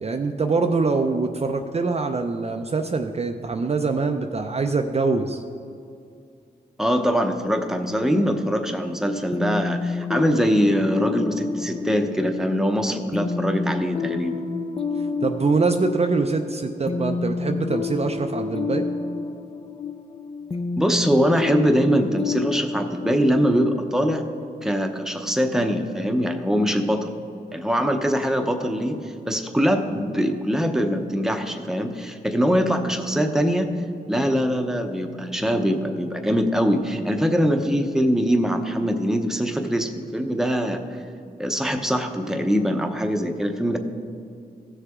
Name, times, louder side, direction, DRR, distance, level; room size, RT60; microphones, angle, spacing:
voice 1, 0.0-5.4 15.2-18.9, right 4 dB, 40° right, 5 dB, 0.5 m, -24 dB
voice 2, 6.8-14.4 20.8-24.2 24.6-27.1 27.5-33.8 34.1-40.8 41.4-43.8, equal, 5° right, 5 dB, 0.8 m, -23 dB
sound 1, 9.3-24.9, left 4 dB, 35° left, 0.6 m, -29 dB
15.5 x 6.7 x 3.6 m, 2.4 s
wide cardioid pair, 85°, 17 cm